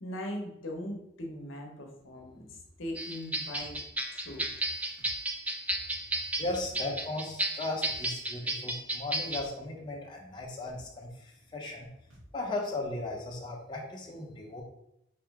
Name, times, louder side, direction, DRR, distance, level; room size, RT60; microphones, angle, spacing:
voice 1, 0.0-3.8 4.1-4.4, equal, 75° left, 1 dB, 1.0 m, -40 dB
sound 1, 3.0-9.4, right 1 dB, 5° right, 0.3 m, -33 dB
sound 2, 3.6-3.8 5.0-5.2 6.4-6.6 7.8-8.0 9.3-9.5 10.7-10.9 12.1-12.3, equal, 70° right, 1.5 m, -53 dB
voice 2, 6.4-11.9 12.3-14.6, left 2 dB, 25° left, -3 dB, 0.8 m, -37 dB
4.8 x 3.1 x 3.6 m, 0.80 s
head